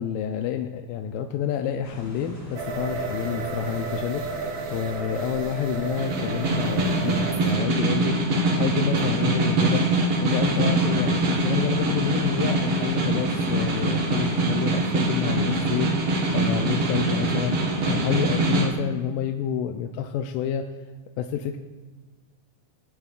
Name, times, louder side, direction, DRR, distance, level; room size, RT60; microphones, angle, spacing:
voice 1, 0.0-4.5 4.7-9.9 10.2-15.9 16.3-17.6 17.9-20.7 21.2-21.6, left 9 dB, 85° left, 5 dB, 2.2 m, -29 dB
sound 1, 1.8-18.7, equal, 20° left, 3.3 m, -41 dB
Granular Trumpet, 2.6-7.5, right 4 dB, 80° right, 1.3 m, -33 dB
Snare drum, 6.0-18.7, right 2 dB, 60° right, 1.6 m, -23 dB
18.5 x 8.4 x 2.4 m, 1.4 s
omnidirectional pair, 4.0 m